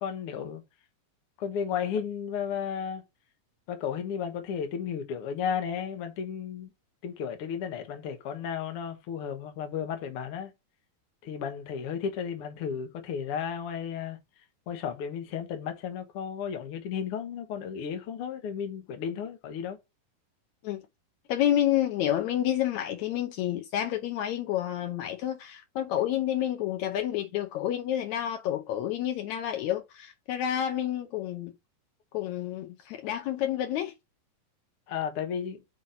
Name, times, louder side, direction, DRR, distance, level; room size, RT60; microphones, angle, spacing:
voice 1, 0.0-0.6 1.4-3.0 3.7-6.7 7.0-10.5 11.2-14.2 14.7-19.8 34.9-35.6, left 7 dB, 65° left, 1.4 m, -33 dB
voice 2, 21.3-31.5 32.1-33.9, left 11 dB, 90° left, 1.6 m, -29 dB
5.9 x 3.9 x 5.6 m
omnidirectional pair, 4.2 m